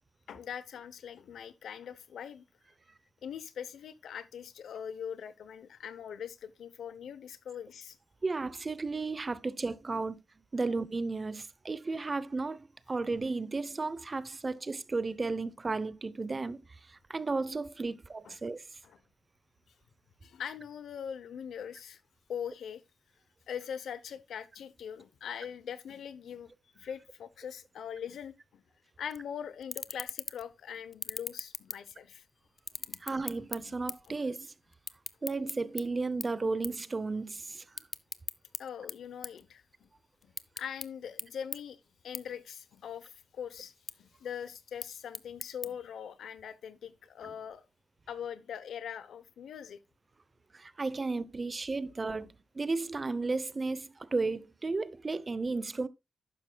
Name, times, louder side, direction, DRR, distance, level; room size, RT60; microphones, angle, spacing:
voice 1, 0.3-2.4 3.2-8.0 9.9-10.0 18.2-18.4 20.2-22.0 22.3-22.8 23.5-28.6 29.0-32.2 32.9-33.0 33.7-33.8 34.1-34.2 38.6-39.9 40.2-43.7 44.0-47.7 48.1-49.8 52.2-52.3, left 8 dB, 85° left, 0.8 m, -42 dB
voice 2, 8.2-10.2 10.5-18.8 33.0-34.5 35.2-37.6 50.5-52.3 52.5-55.9, right 3 dB, 35° right, 0.7 m, -34 dB
sound 1, 29.1-29.2 29.6-30.5 30.9-32.2 32.6-34.1 34.4-35.8 36.2-36.4 36.6-36.8 37.2-38.6 38.9-39.9 40.2-40.9 41.2-41.3 41.5-41.6 42.1-42.2 42.6-43.2 43.6-43.9 44.6-45.7, left 5 dB, 50° left, 0.6 m, -39 dB
11.5 x 9.1 x 2.3 m
cardioid pair, 70°, 0 cm